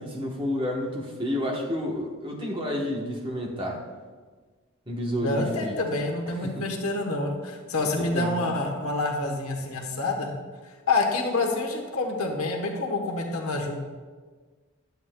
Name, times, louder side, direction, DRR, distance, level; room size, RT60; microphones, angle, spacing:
voice 1, 0.0-3.8 4.9-5.8 6.4-6.6 7.8-8.4, left 1 dB, 20° right, -1 dB, 1.1 m, -30 dB
voice 2, 5.2-10.3 10.6-13.7, left 2 dB, 75° left, 2 dB, 1.1 m, -27 dB
10.5 x 8.0 x 2.3 m, 1.4 s
head